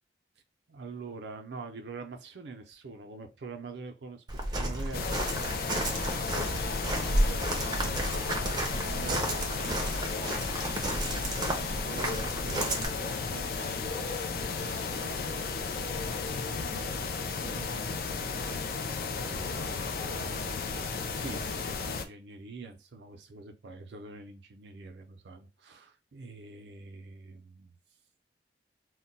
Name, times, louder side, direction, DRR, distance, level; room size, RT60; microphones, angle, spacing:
voice 1, 0.7-6.2 6.9-10.7 11.1-27.8, right 3 dB, 75° right, 0.5 m, -46 dB
Walk footsteps, 4.3-12.9, right 1 dB, 25° right, 0.5 m, -32 dB
sound 1, 4.9-22.0, left 4 dB, 55° left, 0.4 m, -34 dB
sound 2, 6.0-15.1, left 3 dB, 75° left, 0.9 m, -51 dB
2.2 x 2.2 x 3.8 m
head